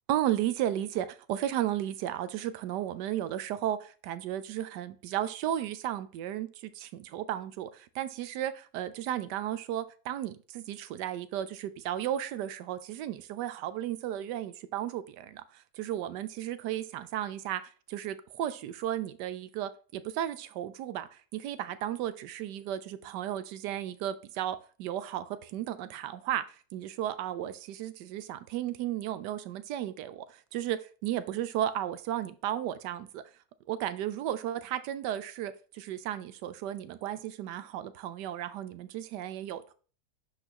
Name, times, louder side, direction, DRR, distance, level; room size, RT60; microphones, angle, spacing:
voice 1, 0.1-17.6 17.9-26.4 26.7-30.2 30.5-33.2 33.7-39.7, right 11 dB, 80° right, 1.2 m, -34 dB
11.0 x 4.1 x 2.9 m
omnidirectional pair, 1.8 m